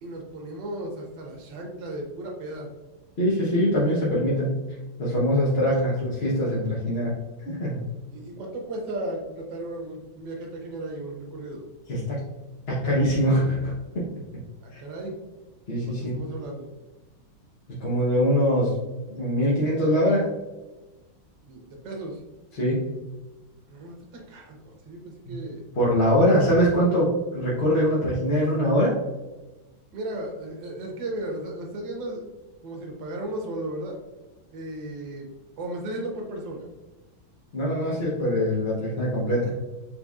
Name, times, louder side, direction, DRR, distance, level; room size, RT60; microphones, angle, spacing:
voice 1, 0.0-2.7 8.1-11.6 14.6-15.2 15.9-16.7 21.4-22.2 23.7-25.6 29.9-32.3 32.6-34.0 34.5-35.3 35.6-36.7, right 1 dB, 70° right, 1 dB, 1.6 m, -35 dB
voice 2, 3.2-4.6 5.0-7.1 7.4-7.9 11.9-12.2 12.7-14.1 14.7-14.8 15.7-16.1 17.8-18.8 19.1-20.3 22.5-22.9 25.3-25.4 25.8-29.0 37.5-39.6, equal, 45° left, -6 dB, 0.8 m, -23 dB
5.3 x 3.3 x 2.4 m, 1.1 s
omnidirectional pair, 2.2 m